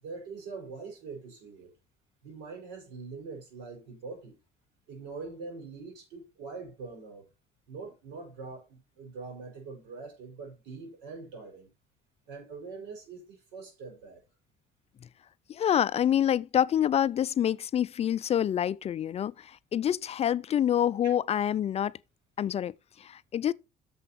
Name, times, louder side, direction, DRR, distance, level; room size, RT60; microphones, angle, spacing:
voice 1, 0.0-1.7 2.2-4.4 4.9-7.3 7.7-11.7 12.3-14.2, right 4 dB, 90° right, 4.8 m, -43 dB
voice 2, 15.5-22.0 22.4-23.5, left 10 dB, 40° left, 0.4 m, -27 dB
7.0 x 5.6 x 5.7 m
cardioid pair, 110°, 17 cm